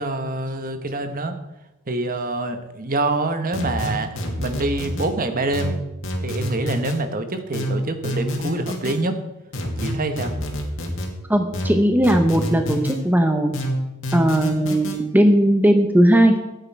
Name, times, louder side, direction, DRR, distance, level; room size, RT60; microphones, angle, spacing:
voice 1, 0.0-1.4 1.9-5.7 6.2-9.2 9.8-10.3, right 2 dB, 40° right, 8 dB, 1.1 m, -26 dB
sound 1, 3.5-5.1 5.5-7.0 7.5-9.0 9.5-11.1 11.5-13.0 13.5-15.0, equal, 65° left, 2.3 m, -27 dB
voice 2, 11.3-13.5 14.1-16.3, right 1 dB, 10° right, 5 dB, 0.8 m, -17 dB
13.5 x 9.2 x 4.6 m, 0.97 s
head